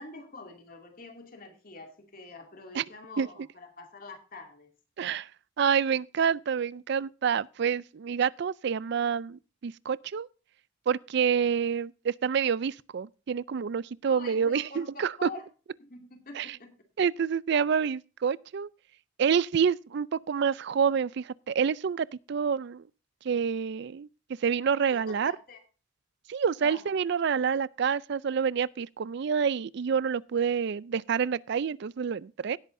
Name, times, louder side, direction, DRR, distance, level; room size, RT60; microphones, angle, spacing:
voice 1, 0.0-4.7 14.1-15.5 15.8-16.8 24.9-25.6 26.6-26.8, left 3 dB, 45° left, 2.4 m, -46 dB
voice 2, 5.0-5.3 5.6-10.3 10.9-15.3 16.3-16.6 17.0-18.7 19.2-22.8 23.2-24.1 24.4-25.3 26.3-32.6, right 7 dB, 60° right, 0.4 m, -28 dB
17.5 x 8.2 x 2.6 m
head